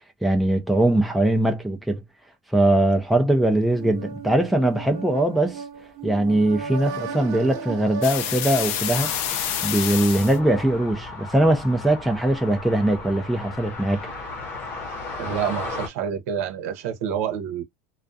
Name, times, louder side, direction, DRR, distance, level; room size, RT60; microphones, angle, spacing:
voice 1, 0.2-2.0 2.5-5.6 6.0-9.1 9.6-14.0, right 1 dB, ahead, 0.4 m, -21 dB
sound 1, 3.7-9.6, right 5 dB, 45° right, 0.6 m, -36 dB
sound 2, 8.0-10.4, left 10 dB, 60° left, 0.5 m, -27 dB
sound 3, 8.9-15.9, left 3 dB, 35° left, 0.9 m, -36 dB
voice 2, 15.2-17.6, right 8 dB, 75° right, 0.8 m, -28 dB
2.3 x 2.3 x 2.6 m
supercardioid pair, 155°, 8 cm